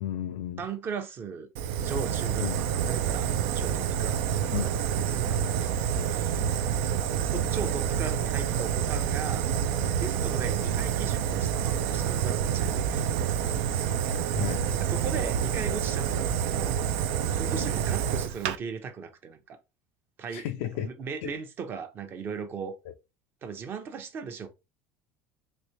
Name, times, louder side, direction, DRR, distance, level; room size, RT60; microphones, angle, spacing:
voice 1, 0.0-0.6 2.4-2.6 4.5-4.7 7.3-7.5 10.6-10.7 14.3-14.8 17.5-17.7 20.3-20.9 21.2-21.3, left 12 dB, 85° left, 0.4 m, -33 dB
voice 2, 0.6-1.5 1.8-6.4 7.1-9.5 9.9-13.5 14.7-16.8 17.3-19.6 20.2-22.7 23.4-24.5, right 5 dB, 40° right, 0.8 m, -38 dB
Fire, 1.6-18.6, right 8 dB, 80° right, 0.4 m, -28 dB
3.2 x 2.7 x 2.9 m
supercardioid pair, 110°, 6 cm